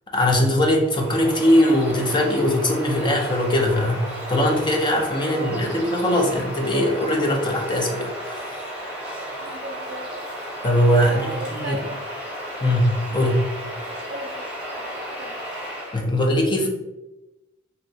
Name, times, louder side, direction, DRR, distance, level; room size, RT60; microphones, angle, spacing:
voice 1, 0.1-4.0 4.3-8.7 10.6-11.8 12.6-13.5 15.9-16.7, left 1 dB, 25° left, 1 dB, 0.5 m, -21 dB
Bird vocalization bird call bird song, 0.8-16.0, equal, 5° right, 0.9 m, -34 dB
voice 2, 5.2-5.6 9.4-10.1 11.0-12.0 14.1-14.5 14.8-15.4, right 2 dB, 55° right, 4 dB, 0.4 m, -36 dB
3.1 x 2.7 x 2.7 m, 0.99 s
head